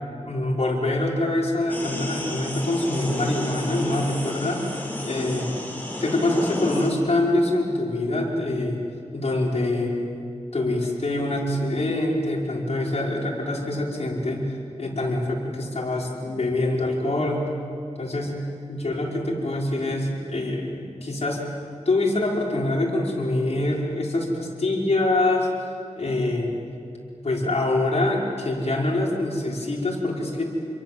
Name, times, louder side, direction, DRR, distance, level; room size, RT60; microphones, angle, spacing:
voice 1, 0.2-4.7 5.0-5.5 6.0-8.8 9.1-9.9 10.5-14.5 14.8-17.5 18.0-18.4 18.7-21.4 21.9-25.5 26.0-26.5 27.2-30.4, left 2 dB, 60° left, -2 dB, 5.4 m, -25 dB
sound 1, 1.7-6.9, left 1 dB, 15° left, 5.1 m, -32 dB
29.0 x 23.0 x 7.8 m, 2.5 s
wide cardioid pair, 90°, 12 cm